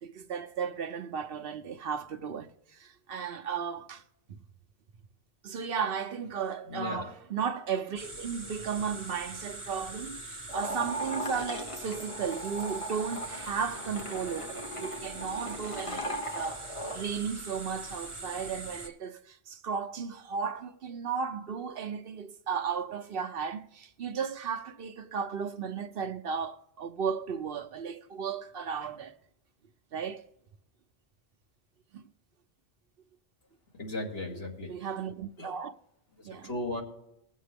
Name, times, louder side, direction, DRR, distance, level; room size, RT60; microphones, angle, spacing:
voice 1, 0.0-4.0 4.3-4.4 5.4-29.1 29.9-30.3 31.9-32.0 34.7-35.7 36.2-36.5, right 6 dB, 65° right, 0.9 m, -35 dB
voice 2, 6.6-7.1 33.7-34.7 35.4-35.6 36.2-36.8, left 2 dB, 70° left, 2.3 m, -36 dB
sound 1, 8.0-18.9, right 2 dB, 30° right, 1.4 m, -43 dB
sound 2, 10.5-17.0, equal, 30° left, 1.1 m, -38 dB
21.0 x 7.3 x 3.5 m
omnidirectional pair, 1.1 m